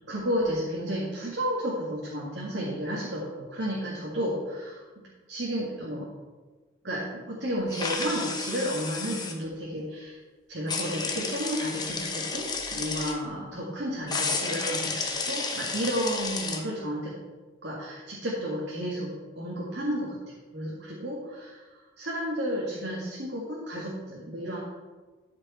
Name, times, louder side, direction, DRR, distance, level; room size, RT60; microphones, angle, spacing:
voice 1, 0.1-4.8 5.3-6.1 6.8-10.2 10.5-17.1 17.6-24.6, equal, 75° right, -5 dB, 1.9 m, -32 dB
sound 1, 7.7-9.3 10.7-13.1 14.1-16.6, left 4 dB, 20° left, 0.9 m, -32 dB
13.0 x 5.2 x 4.3 m, 1.3 s
head